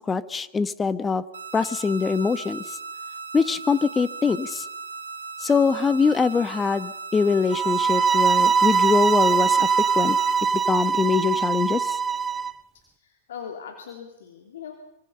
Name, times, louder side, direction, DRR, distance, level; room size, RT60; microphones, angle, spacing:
voice 1, 0.1-1.2 1.5-2.8 3.3-4.6 5.4-9.7 10.0-10.2 10.5-12.0, left 5 dB, 15° left, 14 dB, 1.2 m, -23 dB
sound 1, 1.3-10.3, right 4 dB, 80° right, 2.8 m, -37 dB
sound 2, 7.5-12.5, right 6 dB, 15° right, 0.9 m, -22 dB
voice 2, 13.0-14.8, left 7 dB, 75° left, 4 dB, 3.0 m, -39 dB
25.5 x 25.0 x 5.7 m, 0.86 s
hypercardioid pair, 105°, 0 cm